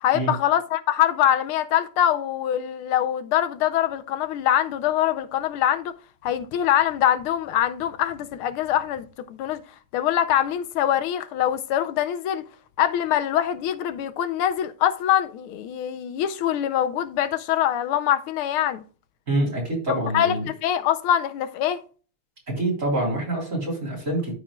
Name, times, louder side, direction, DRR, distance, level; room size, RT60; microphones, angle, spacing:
voice 1, 0.0-5.9 6.2-9.6 9.9-12.4 12.8-18.8 19.9-21.8, left 11 dB, 85° left, 1.5 m, -23 dB
voice 2, 19.3-20.4 22.6-24.3, right 1 dB, 35° right, 4.0 m, -26 dB
13.0 x 5.1 x 2.3 m
omnidirectional pair, 2.4 m